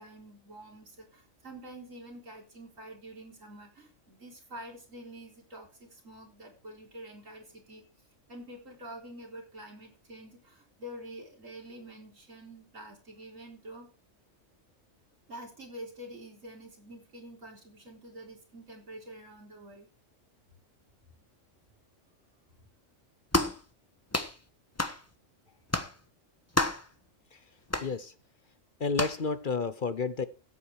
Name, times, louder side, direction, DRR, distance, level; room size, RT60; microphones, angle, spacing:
voice 1, 0.0-7.8 8.3-13.9 15.3-19.9, right 1 dB, 90° right, 0 dB, 4.3 m, -47 dB
sound 1, 23.3-23.6 24.1-24.4 24.8-25.0 25.7-25.9 26.6-26.9 27.7-27.9 29.0-29.2, left 2 dB, 15° left, 1.1 m, -29 dB
voice 2, 27.8-28.1 28.8-30.3, left 4 dB, 45° left, 13 dB, 0.9 m, -30 dB
15.0 x 8.6 x 4.8 m, 0.34 s
omnidirectional pair, 1.3 m